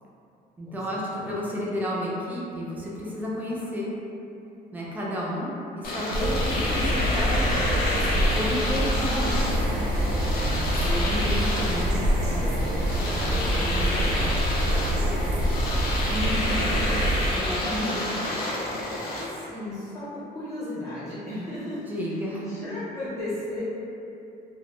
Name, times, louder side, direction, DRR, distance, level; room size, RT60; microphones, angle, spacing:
voice 1, 0.6-3.9 4.7-7.6 8.1-9.4 16.1-16.6 17.3-18.2 21.9-22.5, equal, 10° right, -5 dB, 0.3 m, -31 dB
Domestic sounds home sounds, 5.8-19.3, left 1 dB, 60° left, 0.5 m, -29 dB
sound 1, 6.1-17.4, right 1 dB, 85° right, 0.4 m, -26 dB
voice 2, 10.3-15.7 17.6-18.0 19.1-21.8 22.1-23.6, left 1 dB, 20° left, -11 dB, 0.7 m, -35 dB
2.1 x 2.0 x 2.8 m, 2.7 s
cardioid pair, 170°, 17 cm